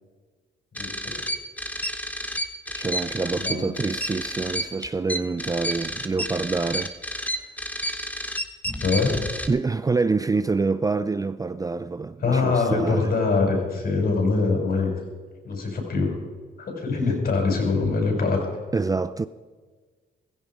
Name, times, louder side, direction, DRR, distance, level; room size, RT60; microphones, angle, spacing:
sound 1, 0.7-9.5, equal, 5° left, 1.2 m, -30 dB
voice 1, 0.8-1.2 3.4-3.8 8.8-9.2 12.2-14.9 15.4-16.1 16.6-18.4, left 4 dB, 50° left, 6.0 m, -23 dB
voice 2, 2.7-6.9 9.5-13.1 18.7-19.3, right 4 dB, 20° right, 0.4 m, -26 dB
16.5 x 15.0 x 4.9 m
cardioid pair, 90°, 20 cm